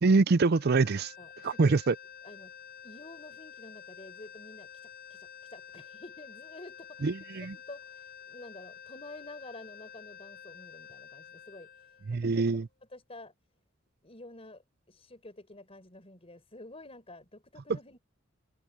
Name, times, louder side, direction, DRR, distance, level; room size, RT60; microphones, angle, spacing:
voice 1, 0.0-1.1 1.4-1.9 7.0-7.5 12.1-12.7, right 3 dB, 55° right, 0.5 m, -24 dB
sound 1, 0.5-12.8, left 8 dB, 50° left, 6.4 m, -50 dB
voice 2, 1.2-1.8 2.2-2.5 2.8-11.7 12.1-12.6 12.9-13.3 14.0-14.6 14.9-18.0, left 2 dB, 30° left, 4.7 m, -50 dB
head